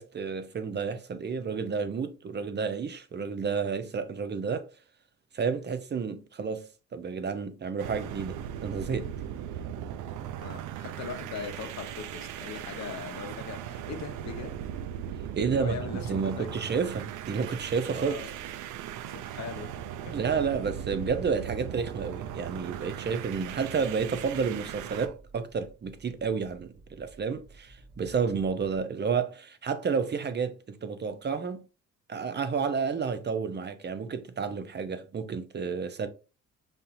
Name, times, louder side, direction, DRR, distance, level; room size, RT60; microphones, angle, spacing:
voice 1, 0.0-4.7 5.3-9.1 15.3-18.2 20.1-31.6 32.1-36.1, right 5 dB, 35° right, 0.6 m, -31 dB
sound 1, 7.8-25.1, right 10 dB, 85° right, 0.5 m, -38 dB
voice 2, 10.4-14.5 15.4-16.5 17.9-18.3 19.1-19.8 20.0-20.1, left 6 dB, 60° left, 0.9 m, -40 dB
sound 2, 21.4-28.8, right 2 dB, 55° right, 2.1 m, -54 dB
5.2 x 2.8 x 2.6 m
cardioid pair, 90°, 30 cm